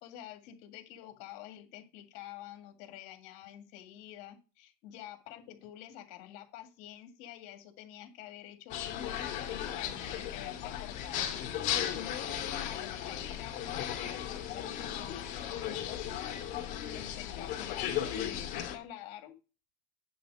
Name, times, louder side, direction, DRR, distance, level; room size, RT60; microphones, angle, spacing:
voice 1, 0.0-11.5 11.9-16.2 16.9-19.4, left 11 dB, 65° left, 6 dB, 1.9 m, -48 dB
sound 1, 8.7-18.8, left 10 dB, 45° left, 2.4 m, -36 dB
10.0 x 4.0 x 6.2 m, 0.32 s
cardioid pair, 160°, 18 cm